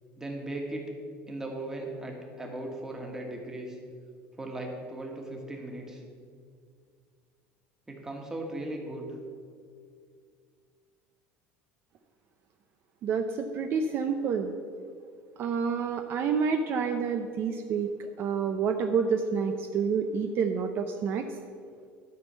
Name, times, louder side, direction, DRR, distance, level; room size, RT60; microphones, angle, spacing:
voice 1, 0.2-0.8 1.3-3.8 4.4-6.0 7.9-9.1, right 1 dB, 10° right, 1 dB, 1.7 m, -37 dB
voice 2, 13.0-14.5 15.4-17.9 18.2-21.2, right 6 dB, 45° right, 5 dB, 0.6 m, -28 dB
12.5 x 4.4 x 6.8 m, 2.2 s
cardioid pair, 130°, 5 cm